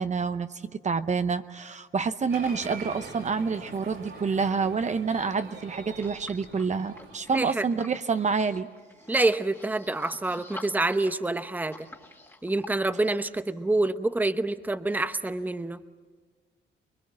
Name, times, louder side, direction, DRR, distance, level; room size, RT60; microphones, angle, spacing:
voice 1, 0.0-8.7, right 5 dB, 35° right, 10 dB, 0.8 m, -28 dB
Applause, 2.3-7.4, right 3 dB, 90° right, 5.1 m, -43 dB
sound 1, 5.9-12.7, left 1 dB, 10° left, 2.0 m, -48 dB
voice 2, 7.3-7.6 9.1-11.9 12.4-15.8, right 2 dB, 10° right, 11 dB, 0.8 m, -27 dB
25.0 x 22.0 x 7.5 m, 1.5 s
cardioid pair, 90°, 20 cm